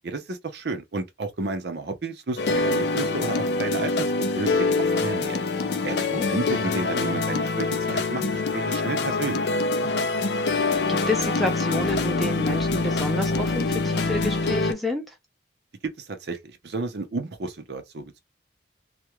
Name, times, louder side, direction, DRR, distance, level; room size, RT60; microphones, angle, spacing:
voice 1, 0.0-3.9 4.2-5.4 5.8-9.6 15.8-18.2, right 3 dB, 60° right, 0.5 m, -32 dB
sound 1, 2.4-14.7, left 3 dB, 60° left, 0.4 m, -25 dB
voice 2, 5.8-6.2 10.4-15.2, left 1 dB, ahead, 0.5 m, -30 dB
2.3 x 2.1 x 2.8 m
head